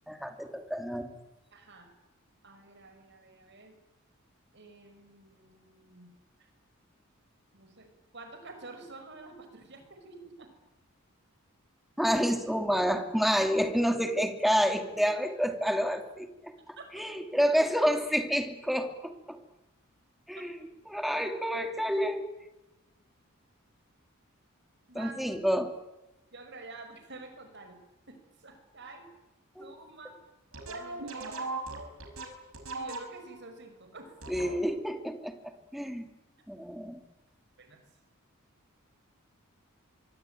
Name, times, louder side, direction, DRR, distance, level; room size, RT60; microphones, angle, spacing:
voice 1, 0.1-1.1 12.0-19.4 20.3-20.5 20.9-22.3 24.9-25.7 29.6-29.7 34.3-36.0 36.5-37.0, equal, ahead, 5 dB, 2.6 m, -29 dB
voice 2, 1.5-1.9 2.4-3.7 4.5-6.1 6.4-6.5 7.5-10.5 16.8-17.0 20.4-20.5 24.9-25.2 26.3-27.8 28.1-29.1 29.6-30.1 30.7-31.6 32.7-34.2 37.6-37.8, right 3 dB, 55° right, 7 dB, 5.8 m, -49 dB
sound 1, 30.5-33.4 34.2-34.9, right 3 dB, 75° right, 5.5 m, -39 dB
25.0 x 24.5 x 9.2 m, 0.99 s
head